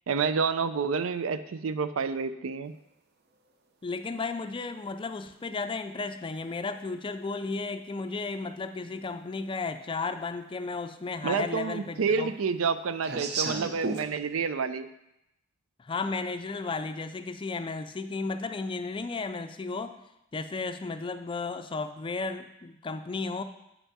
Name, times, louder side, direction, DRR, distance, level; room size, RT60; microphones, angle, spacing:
voice 1, 0.1-2.8 11.2-14.9, right 5 dB, 85° right, 12 dB, 0.5 m, -29 dB
voice 2, 3.8-12.3 15.8-20.0 20.3-23.4, left 3 dB, 25° left, 9 dB, 0.4 m, -34 dB
sound 1, 7.5-7.6 8.9-9.0 9.5-9.6 9.8-10.5 10.8-14.1, right 4 dB, 55° right, 0.7 m, -34 dB
8.4 x 5.8 x 4.1 m, 0.85 s
head